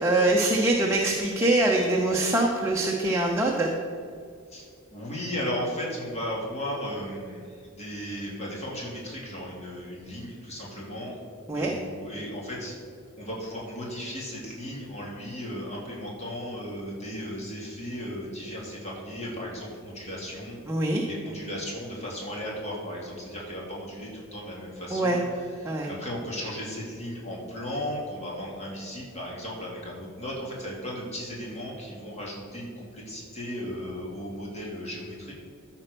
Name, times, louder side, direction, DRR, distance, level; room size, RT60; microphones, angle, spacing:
voice 1, 0.0-3.7 11.5-11.7 20.7-21.0 24.9-25.2 25.6-25.9, right 2 dB, 15° right, -1 dB, 0.8 m, -23 dB
voice 2, 4.5-11.2 11.5-12.8 13.2-20.6 21.0-25.2 25.6-35.3, equal, 30° left, -4 dB, 2.6 m, -36 dB
13.0 x 4.5 x 6.7 m, 2.2 s
head